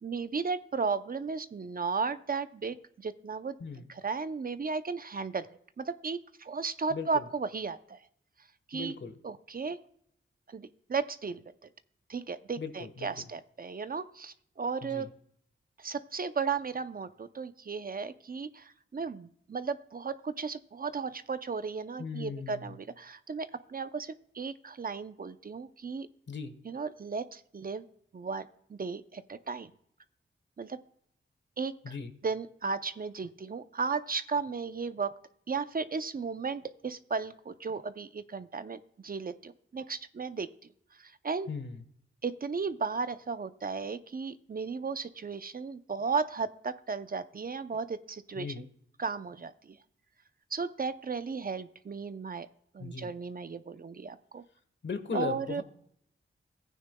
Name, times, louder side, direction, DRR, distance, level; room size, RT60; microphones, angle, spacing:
voice 1, 0.0-3.6 3.9-5.5 5.8-8.0 8.7-8.9 9.2-9.8 10.5-11.4 12.1-15.1 15.8-26.1 26.6-27.9 28.1-29.7 30.6-30.8 31.6-31.9 32.2-35.1 35.5-40.5 40.9-41.5 42.2-48.7 49.0-49.8 50.5-52.5 52.7-54.4 55.1-55.6, right 5 dB, 45° right, 12 dB, 0.6 m, -35 dB
voice 2, 6.9-7.2 8.7-9.1 12.6-13.1 14.8-15.1 22.0-22.8 26.3-26.5 31.8-32.1 41.5-41.8 48.4-48.6 52.8-53.1 54.8-55.6, left 5 dB, 60° left, 9 dB, 1.3 m, -38 dB
14.5 x 9.2 x 2.3 m, 0.68 s
cardioid pair, 50°, 21 cm